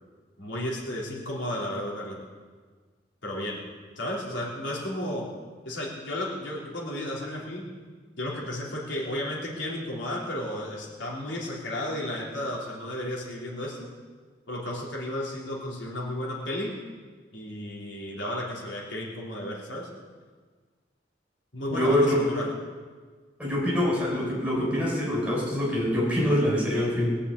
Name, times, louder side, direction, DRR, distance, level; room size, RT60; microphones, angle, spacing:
voice 1, 0.4-2.2 3.2-3.6 4.0-5.3 5.6-7.7 8.2-13.9 14.5-16.7 17.3-19.9 21.5-22.5, left 1 dB, 85° left, -3 dB, 3.4 m, -33 dB
voice 2, 21.7-22.2 23.4-27.1, left 1 dB, 5° right, -4 dB, 4.7 m, -24 dB
20.5 x 7.0 x 8.3 m, 1.5 s
head